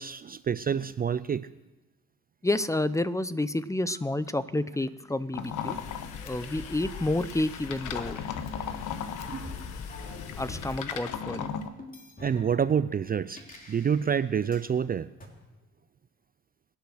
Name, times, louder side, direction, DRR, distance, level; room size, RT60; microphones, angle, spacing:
voice 1, 0.0-1.5 9.3-9.7 12.2-13.4 13.7-15.1, right 7 dB, 30° right, 15 dB, 0.4 m, -28 dB
voice 2, 2.4-5.8 6.3-8.2 10.4-11.5, left 2 dB, 10° left, 15 dB, 0.6 m, -29 dB
sound 1, 3.9-7.4 7.9-10.9 11.8-14.7 15.2-15.3, left 2 dB, 30° left, 3.4 m, -48 dB
sound 2, 5.3-11.7, left 8 dB, 85° left, 1.2 m, -38 dB
sound 3, 5.7-10.8, left 6 dB, 60° left, 1.3 m, -41 dB
24.0 x 8.6 x 6.3 m, 1.1 s
cardioid pair, 90°, 30 cm